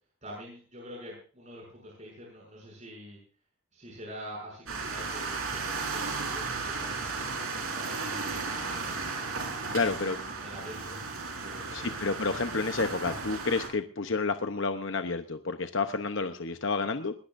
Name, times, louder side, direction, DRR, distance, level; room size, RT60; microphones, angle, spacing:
voice 1, 0.2-3.2 3.7-9.0 9.7-11.0 11.4-12.0, equal, 35° right, -3 dB, 7.0 m, -46 dB
sound 1, 4.7-13.7, right 4 dB, 75° right, 4.4 m, -35 dB
voice 2, 9.7-10.2 11.7-17.1, left 4 dB, 60° left, 7 dB, 0.9 m, -30 dB
20.5 x 18.5 x 2.6 m, 0.39 s
head